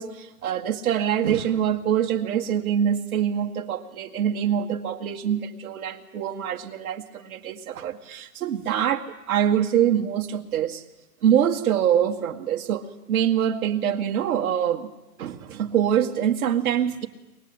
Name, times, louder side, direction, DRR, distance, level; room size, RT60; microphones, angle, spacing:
voice 1, 0.0-10.8 11.2-14.9 15.2-17.1, right 9 dB, 65° right, 2 dB, 1.9 m, -24 dB
23.5 x 20.0 x 8.8 m, 1.1 s
hypercardioid pair, 145°, 46 cm